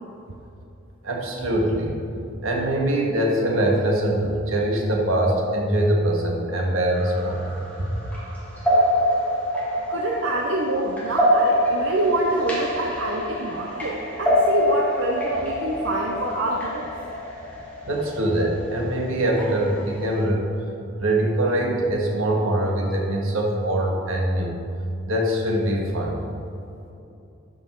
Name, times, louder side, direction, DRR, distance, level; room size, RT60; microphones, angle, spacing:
voice 1, 1.0-1.9 2.4-7.4 7.8-7.9 17.8-20.4 21.0-24.5 25.1-26.2, right 1 dB, 85° right, 0 dB, 1.6 m, -23 dB
sound 1, 6.9-20.2, equal, 5° left, 1.9 m, -26 dB
voice 2, 9.9-16.9, right 1 dB, 65° right, 0 dB, 0.7 m, -26 dB
12.0 x 5.4 x 4.5 m, 2.7 s
head